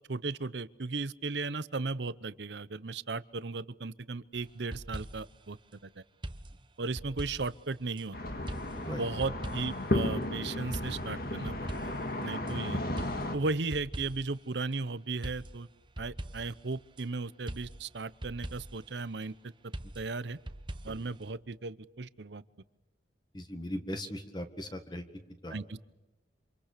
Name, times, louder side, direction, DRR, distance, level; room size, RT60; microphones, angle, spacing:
voice 1, 0.1-5.6 5.8-6.0 6.8-8.2 8.9-11.5 11.8-11.9 12.2-12.9 13.3-15.7 16.0-19.5 19.9-20.4 20.8-22.4 25.5-25.8, right 3 dB, 70° right, 16 dB, 0.8 m, -36 dB
sound 1, 4.4-5.4 6.2-8.0 8.5-9.9 10.7-12.5 13.0-14.4 15.2-17.0 17.5-18.9 19.7-21.3, right 1 dB, 25° right, 1.0 m, -43 dB
sound 2, 8.1-13.4, left 1 dB, 50° left, 2.0 m, -34 dB
voice 2, 23.3-25.0 25.4-25.8, left 1 dB, 25° left, 6 dB, 1.8 m, -39 dB
28.0 x 26.5 x 6.8 m, 1.1 s
head